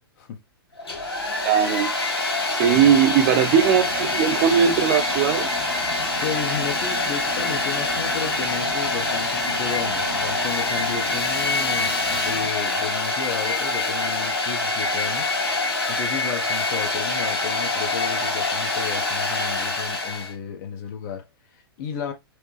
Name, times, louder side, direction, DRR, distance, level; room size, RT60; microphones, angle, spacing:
Domestic sounds home sounds, 0.8-20.3, left 3 dB, 85° left, 1.6 m, -25 dB
voice 1, 1.4-1.9 2.5-5.5, right 8 dB, 45° right, 0.9 m, -19 dB
voice 2, 2.6-3.0 5.8-22.1, left 7 dB, 45° left, 1.2 m, -33 dB
sound 1, 2.7-12.5, right 3 dB, 75° right, 1.2 m, -38 dB
4.8 x 2.3 x 3.1 m
figure-of-eight pair, 110°, 13 cm